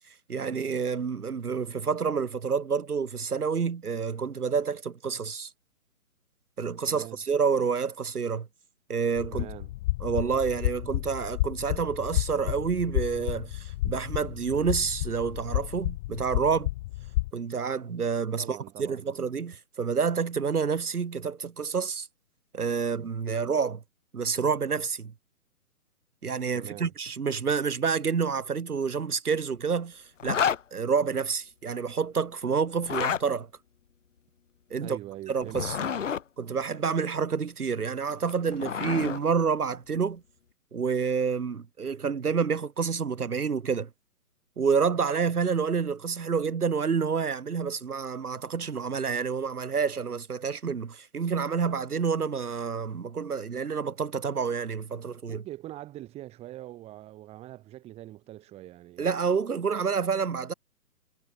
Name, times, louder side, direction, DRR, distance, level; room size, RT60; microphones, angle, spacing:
voice 1, 0.3-5.5 6.6-8.5 8.9-9.5 10.0-16.7 17.3-22.1 22.5-23.8 24.1-25.1 26.2-30.4 30.7-33.5 34.7-35.0 35.3-35.8 36.4-40.2 40.7-43.9 44.6-55.4 59.0-60.5, right 6 dB, 80° right, 1.2 m, -28 dB
voice 2, 6.9-7.2 9.3-9.7 18.4-19.1 26.5-26.9 34.7-36.0 55.3-59.0, right 14 dB, 15° right, 2.2 m, -43 dB
sound 1, 9.2-17.3, left 18 dB, 15° left, 0.8 m, -31 dB
Zipper (clothing), 30.2-30.6 32.8-33.2 35.4-36.2 38.1-39.2, left 7 dB, 55° left, 2.1 m, -29 dB
figure-of-eight pair, 135°, 44 cm